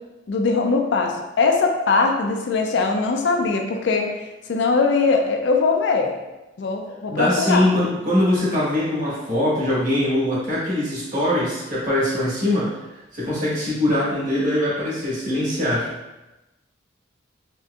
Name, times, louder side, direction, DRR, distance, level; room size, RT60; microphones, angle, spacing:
voice 1, 0.3-6.1 6.6-7.7, left 4 dB, 65° left, 3 dB, 0.4 m, -21 dB
voice 2, 7.1-15.9, left 1 dB, 40° right, -7 dB, 1.2 m, -22 dB
4.1 x 2.5 x 2.3 m, 1.0 s
head